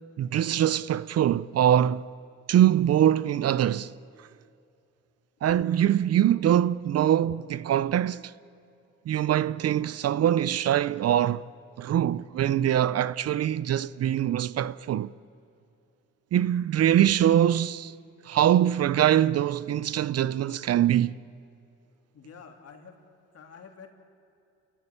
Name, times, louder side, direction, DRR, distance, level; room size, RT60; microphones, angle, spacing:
voice 1, 0.2-2.1 2.5-3.9 4.2-4.3 5.4-8.3 9.1-11.5 11.8-15.1 16.3-17.9 18.2-21.2, right 11 dB, 55° right, 0.6 m, -23 dB
voice 2, 22.1-23.0 23.3-23.9, left 6 dB, 55° left, 3.3 m, -48 dB
29.5 x 14.0 x 9.9 m
cardioid pair, 90°, 30 cm